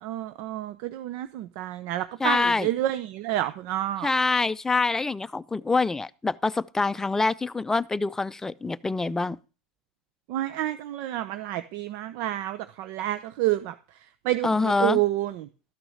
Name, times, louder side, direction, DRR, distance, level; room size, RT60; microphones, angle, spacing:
voice 1, 0.0-4.1 10.3-13.7 14.2-15.5, right 14 dB, 60° right, 0.7 m, -29 dB
voice 2, 2.2-2.7 4.0-9.4 14.4-15.0, left 3 dB, 10° left, 0.5 m, -25 dB
13.0 x 6.1 x 6.5 m
supercardioid pair, 130°, 5 cm